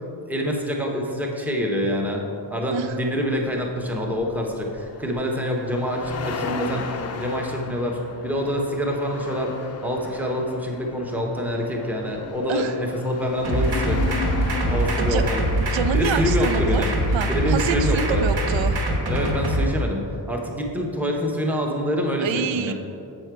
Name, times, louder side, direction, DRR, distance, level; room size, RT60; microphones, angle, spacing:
voice 1, 0.3-2.2 2.5-14.0 14.7-15.4 15.9-16.9 17.3-18.2 19.0-22.7, equal, 5° right, 0 dB, 0.6 m, -26 dB
sound 1, 2.9-15.8, left 4 dB, 35° left, 0.4 m, -35 dB
sound 2, 13.4-19.6, right 1 dB, 60° right, 1.3 m, -23 dB
voice 2, 15.7-16.9 17.1-18.8 22.2-22.7, right 7 dB, 85° right, 10 dB, 0.5 m, -27 dB
7.6 x 6.2 x 4.5 m, 2.7 s
wide cardioid pair, 180°, 44 cm